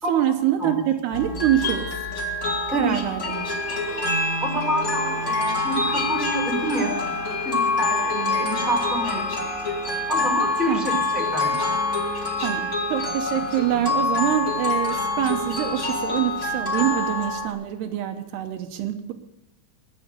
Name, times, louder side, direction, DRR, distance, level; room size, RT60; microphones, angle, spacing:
voice 1, 0.1-2.0 2.7-3.4 8.3-8.5 10.7-10.9 12.4-19.1, right 11 dB, 80° right, 6 dB, 3.0 m, -25 dB
sound 1, 1.1-17.5, left 2 dB, 25° left, 1.7 m, -26 dB
sound 2, 3.3-14.9, left 3 dB, 60° left, 3.5 m, -36 dB
voice 2, 4.4-7.0 7.4-9.3 10.1-11.7, equal, ahead, 1 dB, 3.5 m, -27 dB
22.0 x 7.7 x 6.7 m, 0.89 s
omnidirectional pair, 4.7 m